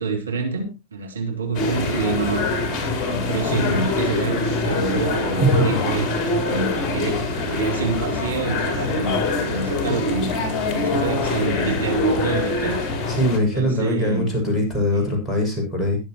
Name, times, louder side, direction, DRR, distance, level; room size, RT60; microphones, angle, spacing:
voice 1, 0.0-2.5 3.0-12.8 13.4-14.3 14.9-15.0, right 4 dB, 75° right, 3.3 m, -28 dB
sound 1, 1.5-13.4, left 3 dB, 30° left, 4.0 m, -24 dB
voice 2, 5.4-5.8 13.1-16.0, equal, 10° left, 6.9 m, -21 dB
21.5 x 7.7 x 3.0 m
figure-of-eight pair, 90°, 0 cm